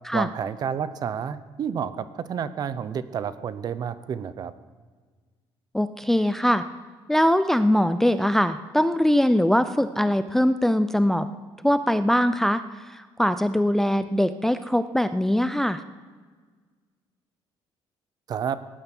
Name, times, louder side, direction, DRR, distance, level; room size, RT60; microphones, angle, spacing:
voice 1, 0.1-4.5 18.3-18.6, right 8 dB, 45° right, 14 dB, 0.8 m, -30 dB
voice 2, 5.7-6.6 7.1-11.3 11.6-15.8, equal, 5° left, 11 dB, 0.4 m, -22 dB
18.0 x 11.5 x 6.0 m, 1.5 s
cardioid pair, 155°, 10 cm